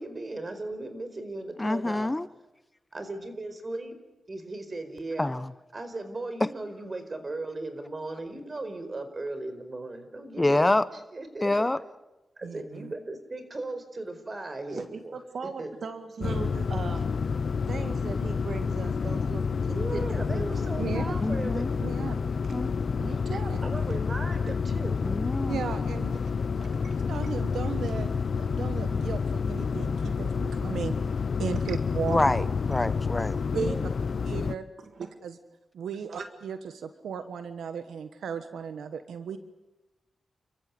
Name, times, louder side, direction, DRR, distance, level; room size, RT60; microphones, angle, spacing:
voice 1, 0.0-2.1 2.9-4.0 4.3-5.3 5.7-11.7 12.4-15.2 15.4-15.7 19.7-21.6 23.6-25.0 33.5-33.9, right 2 dB, 40° right, 9 dB, 4.7 m, -37 dB
voice 2, 1.6-2.3 5.2-5.5 6.4-6.5 10.4-10.8 11.4-11.8 21.2-21.7 22.5-22.8 25.0-25.6 32.1-33.4, left 2 dB, 20° left, 15 dB, 0.8 m, -26 dB
voice 3, 12.4-12.9 16.2-16.6 20.8-21.1 21.8-22.2 23.5-23.6 25.5-26.2 27.1-30.9 31.4-32.5 33.5-33.8 34.2-34.6 35.0-35.4 35.7-39.4, right 6 dB, 90° right, 9 dB, 1.4 m, -36 dB
voice 4, 14.7-17.1 17.7-20.5 20.7-20.9 22.9-23.6 25.0-25.3 26.6-27.0 34.8-35.2 36.1-36.3, right 4 dB, 65° right, 8 dB, 1.7 m, -39 dB
sound 1, 16.2-34.5, left 5 dB, 60° left, 0.8 m, -29 dB
29.5 x 15.0 x 9.6 m, 1.0 s
cardioid pair, 60°, 0 cm